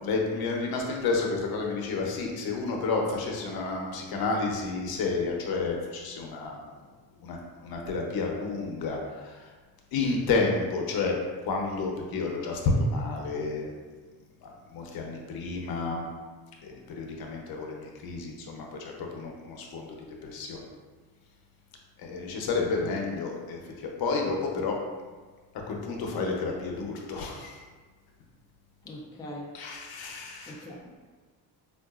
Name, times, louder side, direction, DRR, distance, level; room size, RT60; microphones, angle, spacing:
voice 1, 0.0-6.7 7.2-9.4 9.9-11.2 11.4-13.7 14.4-16.0 16.6-19.9 20.2-20.6 22.0-24.8 25.7-27.6 29.5-30.6, left 3 dB, 70° left, 0 dB, 0.7 m, -30 dB
voice 2, 28.9-29.5 30.5-31.0, left 1 dB, 10° left, -2 dB, 0.3 m, -41 dB
4.5 x 2.4 x 2.3 m, 1.4 s
cardioid pair, 125°, 38 cm